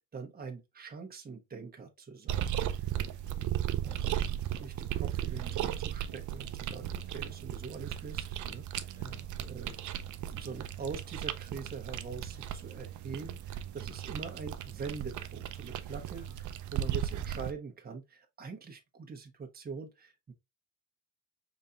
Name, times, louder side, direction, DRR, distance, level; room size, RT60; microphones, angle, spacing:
voice 1, 0.1-2.6 2.9-3.1 3.8-9.0 9.4-10.0 10.3-20.3, right 5 dB, 30° right, 1.2 m, -44 dB
sound 1, 2.3-17.5, right 11 dB, 75° right, 0.6 m, -36 dB
voice 2, 3.0-4.2 8.9-9.3 16.1-16.6, left 1 dB, 30° left, 1.9 m, -56 dB
5.3 x 4.1 x 2.4 m
cardioid pair, 90°, 30 cm